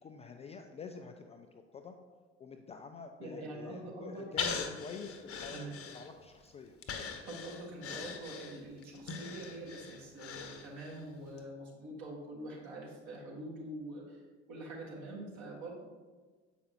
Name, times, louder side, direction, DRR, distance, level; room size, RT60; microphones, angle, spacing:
voice 1, 0.0-2.0 2.4-6.8, left 5 dB, 20° left, 4 dB, 0.3 m, -47 dB
voice 2, 3.2-4.8 5.5-5.8 7.3-15.7, right 1 dB, 55° right, -2 dB, 1.6 m, -45 dB
Breathing, 4.4-6.4 6.8-11.0 11.4-11.5, left 6 dB, 40° left, 0.8 m, -41 dB
7.6 x 5.1 x 2.8 m, 1.4 s
figure-of-eight pair, 55°, 35 cm